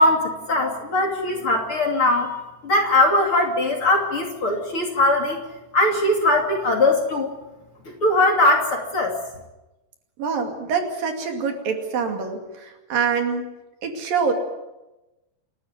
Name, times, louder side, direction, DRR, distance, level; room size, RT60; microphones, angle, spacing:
voice 1, 0.0-2.3 2.6-5.4 5.7-7.3 7.8-9.1, left 2 dB, 35° left, 1 dB, 3.1 m, -20 dB
voice 2, 10.2-13.4 13.8-14.3, right 5 dB, 65° right, 4 dB, 4.1 m, -25 dB
28.5 x 12.5 x 9.7 m, 1.0 s
omnidirectional pair, 4.5 m